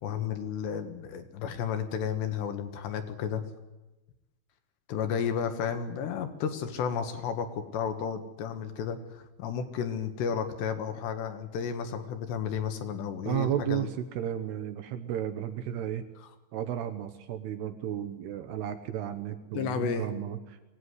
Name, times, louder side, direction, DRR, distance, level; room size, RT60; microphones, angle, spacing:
voice 1, 0.0-3.4 4.9-13.9 16.2-16.3 19.5-20.1, left 7 dB, 70° left, 8 dB, 3.4 m, -32 dB
voice 2, 13.2-16.0 16.5-20.6, right 11 dB, 70° right, 9 dB, 2.7 m, -33 dB
23.0 x 17.0 x 9.7 m, 1.1 s
omnidirectional pair, 5.5 m